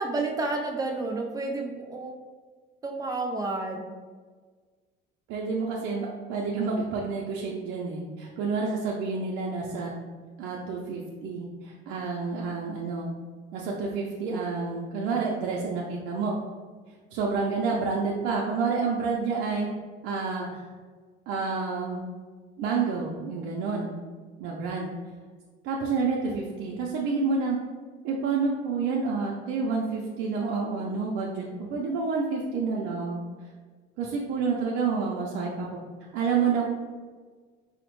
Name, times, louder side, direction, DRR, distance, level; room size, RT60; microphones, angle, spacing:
voice 1, 0.0-2.1 2.8-3.9, right 2 dB, 20° right, 2 dB, 0.5 m, -30 dB
voice 2, 5.3-9.9 10.4-13.1 13.5-16.4 17.1-19.7 20.0-20.6 21.3-22.1 22.6-24.0 24.4-24.9 25.6-27.6 28.0-31.4 31.7-33.2 34.0-35.8 36.1-36.6, right 4 dB, 85° right, -2 dB, 0.5 m, -29 dB
4.9 x 2.1 x 3.0 m, 1.5 s
cardioid pair, 130°, 20 cm